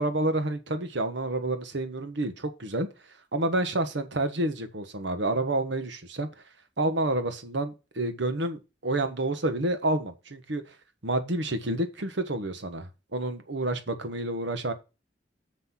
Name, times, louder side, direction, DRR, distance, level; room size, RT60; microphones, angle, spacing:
voice 1, 0.0-2.9 3.3-6.3 6.8-10.6 11.0-14.7, right 2 dB, 80° right, 1.3 m, -29 dB
6.5 x 6.1 x 5.7 m
head